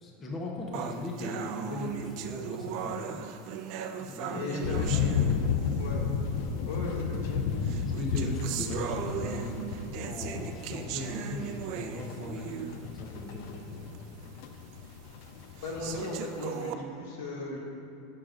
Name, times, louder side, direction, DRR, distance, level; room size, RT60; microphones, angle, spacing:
voice 1, 0.0-3.2 4.0-5.6 7.8-13.9, left 2 dB, 25° left, -1 dB, 0.9 m, -38 dB
sound 1, 0.7-5.9 6.7-6.8 7.6-12.9 13.3-13.4 13.9-14.0 14.7-14.8 15.6-16.7, right 9 dB, 50° right, 0.5 m, -38 dB
voice 2, 4.3-4.9 5.8-6.0 6.7-7.5 15.6-17.6, left 2 dB, 85° left, -3 dB, 2.0 m, -36 dB
sound 2, 4.6-16.0, left 6 dB, 60° left, 0.5 m, -33 dB
16.0 x 6.5 x 2.5 m, 2.9 s
supercardioid pair, 150°, 0 cm